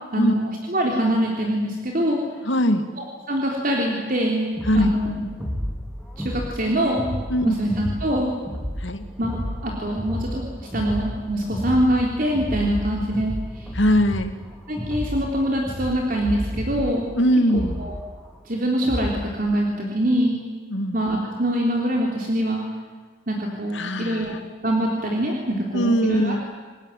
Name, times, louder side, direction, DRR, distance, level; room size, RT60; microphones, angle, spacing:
voice 1, 0.1-2.2 3.0-5.1 6.2-7.1 7.4-8.3 9.2-10.5 10.7-13.7 14.7-17.1 17.5-18.0 18.5-20.4 20.9-22.6 23.3-26.4, right 1 dB, 45° right, 0 dB, 3.7 m, -24 dB
voice 2, 2.5-2.9 4.7-4.9 7.3-7.6 8.8-9.0 13.7-14.3 17.2-17.8 20.7-21.0 23.7-24.4 25.7-26.4, equal, 70° left, 8 dB, 2.3 m, -21 dB
sound 1, 4.6-19.3, equal, ahead, 4.1 m, -32 dB
28.0 x 20.5 x 9.4 m, 1.4 s
head